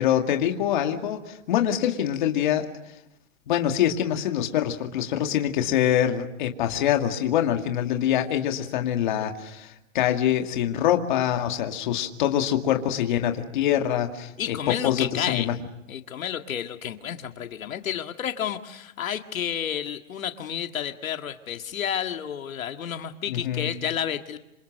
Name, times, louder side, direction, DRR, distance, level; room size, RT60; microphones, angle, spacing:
voice 1, 0.0-2.7 3.5-14.6 14.8-15.5 23.3-23.7, left 10 dB, 35° left, 4 dB, 2.1 m, -24 dB
voice 2, 14.4-15.6 15.9-24.4, left 9 dB, 80° left, 7 dB, 1.9 m, -31 dB
27.0 x 26.5 x 6.5 m, 0.87 s
hypercardioid pair, 175°, 40 cm